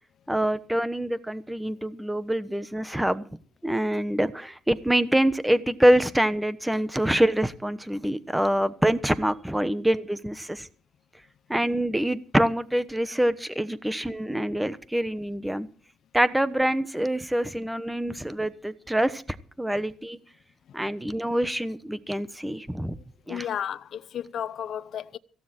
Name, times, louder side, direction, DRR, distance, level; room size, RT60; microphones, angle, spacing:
voice 1, 0.3-3.2 3.6-10.7 11.5-15.7 16.1-19.2 19.6-20.2 20.7-23.0 23.3-23.5, right 1 dB, 5° right, 1.1 m, -25 dB
voice 2, 23.3-25.2, left 9 dB, 60° left, 0.8 m, -33 dB
17.5 x 15.5 x 4.5 m
cardioid pair, 120°, 0 cm